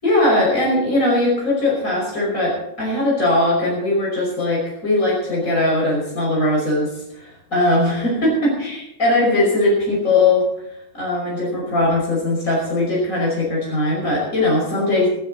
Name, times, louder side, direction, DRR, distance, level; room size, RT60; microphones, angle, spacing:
voice 1, 0.0-10.5 10.9-15.1, left 2 dB, 65° left, -4 dB, 6.1 m, -20 dB
25.5 x 10.5 x 4.1 m, 0.79 s
omnidirectional pair, 1.5 m